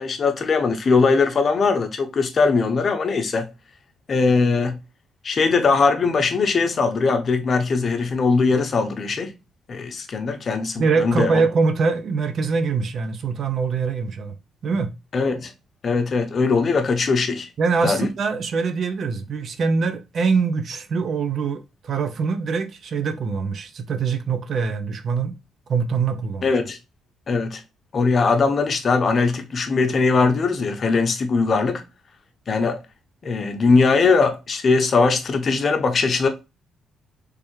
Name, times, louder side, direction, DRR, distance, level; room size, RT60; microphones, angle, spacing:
voice 1, 0.0-3.5 4.1-4.8 5.2-9.3 9.7-11.4 15.1-15.5 15.8-17.5 17.8-18.1 26.4-26.8 27.3-27.6 27.9-31.8 32.5-32.8 33.2-36.3, left 4 dB, 45° left, 0.7 m, -20 dB
voice 2, 10.8-14.3 14.6-14.9 17.6-25.3 25.7-26.5, right 5 dB, 55° right, 0.5 m, -23 dB
3.4 x 3.2 x 3.1 m
cardioid pair, 90°, 0 cm